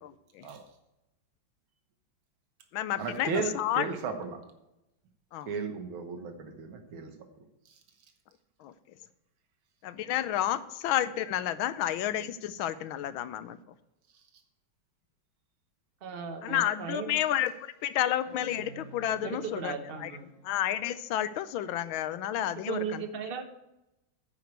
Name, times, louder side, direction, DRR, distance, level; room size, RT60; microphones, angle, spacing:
voice 1, 0.0-0.5 2.7-3.9 5.3-5.5 8.6-8.7 9.8-13.6 16.4-20.1 20.4-23.0, left 11 dB, 85° left, 14 dB, 1.4 m, -31 dB
voice 2, 3.0-4.4 5.5-7.8, right 5 dB, 85° right, 6 dB, 2.0 m, -35 dB
voice 3, 16.0-17.1 19.2-20.3 22.7-23.4, right 6 dB, 40° right, 6 dB, 0.8 m, -36 dB
sound 1, 18.2-20.7 22.4-22.5, equal, 40° left, 2.1 m, -50 dB
9.2 x 5.1 x 7.9 m, 0.92 s
omnidirectional pair, 2.2 m